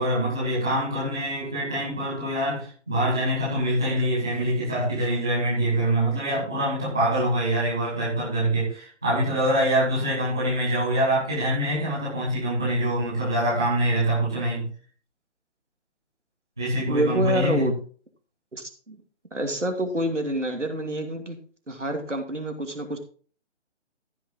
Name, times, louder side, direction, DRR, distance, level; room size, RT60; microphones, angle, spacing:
voice 1, 0.0-14.7 16.6-17.7, right 1 dB, 5° right, -7 dB, 0.6 m, -25 dB
voice 2, 16.9-17.7 18.5-19.0 19.3-21.4 21.7-23.0, right 1 dB, 85° right, 5 dB, 2.7 m, -27 dB
14.5 x 6.0 x 3.8 m, 0.41 s
figure-of-eight pair, 145°, 35 cm